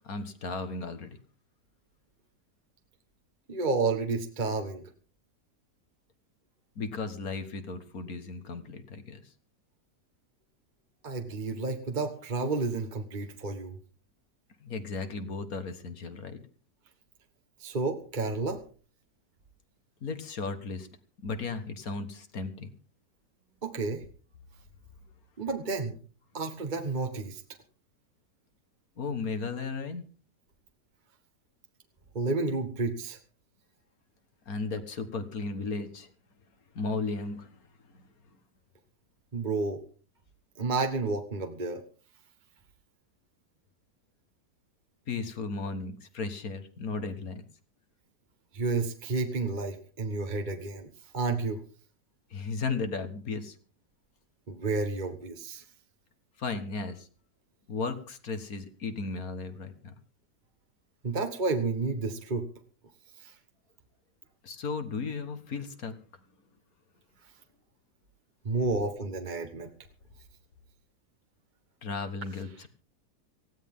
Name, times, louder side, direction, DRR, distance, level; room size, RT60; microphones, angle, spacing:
voice 1, 0.1-1.2 6.8-9.2 14.6-16.4 20.0-20.9 21.2-22.7 29.0-30.0 34.5-36.1 36.8-37.5 45.1-47.4 52.3-53.6 56.4-57.1 57.7-59.9 64.4-66.0 71.8-72.7, left 4 dB, 60° left, 10 dB, 1.9 m, -35 dB
voice 2, 3.5-4.8 11.0-13.8 17.6-18.6 23.6-24.0 25.4-26.0 26.3-27.4 32.1-33.2 39.3-39.8 40.6-41.8 48.5-50.9 51.1-51.6 54.5-55.6 61.0-62.5 63.2-63.3 68.4-69.7, right 3 dB, 30° right, 5 dB, 1.3 m, -31 dB
19.0 x 15.5 x 3.7 m, 0.39 s
omnidirectional pair, 1.8 m